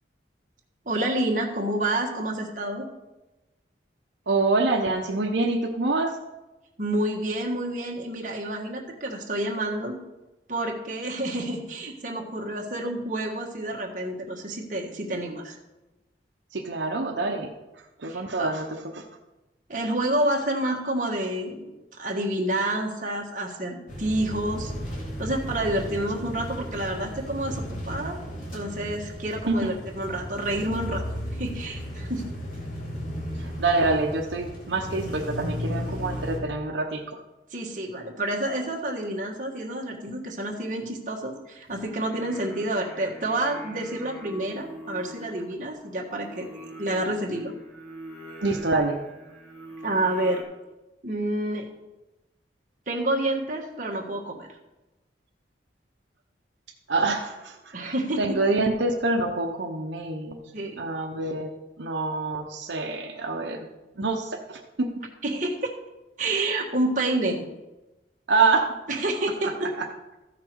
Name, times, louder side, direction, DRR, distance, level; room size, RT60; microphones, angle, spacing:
voice 1, 0.8-2.9 6.8-10.0 10.5-15.6 18.1-18.5 19.7-24.7 25.2-28.2 28.5-32.3 37.5-47.5 49.8-50.4 51.0-51.7 52.9-54.5 57.7-58.4 60.5-60.8 65.2-65.8 66.2-67.4 68.9-69.7, right 1 dB, 45° right, 0 dB, 1.5 m, -29 dB
voice 2, 4.3-6.2 16.5-17.5 18.0-18.7 18.9-19.0 29.5-29.6 33.4-37.0 48.4-49.0 56.9-57.9 58.2-60.4 60.8-61.5 61.8-63.7 64.0-64.9 68.3-68.7 69.6-69.9, right 3 dB, 80° right, 2 dB, 0.9 m, -26 dB
sound 1, 23.9-36.4, equal, 45° left, 2.3 m, -35 dB
Singing, 41.6-50.4, equal, 5° left, 1.7 m, -44 dB
14.0 x 5.9 x 4.6 m, 1.0 s
head